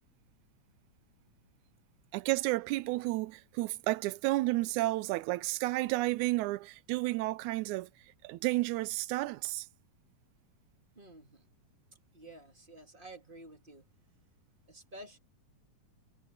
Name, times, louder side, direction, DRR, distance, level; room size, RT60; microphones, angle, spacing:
voice 1, 2.1-7.9 8.2-9.7, right 19 dB, 80° right, 1.9 m, -31 dB
voice 2, 11.0-11.4 12.1-13.9 14.7-15.2, right 1 dB, 20° right, 1.8 m, -51 dB
omnidirectional pair, 3.8 m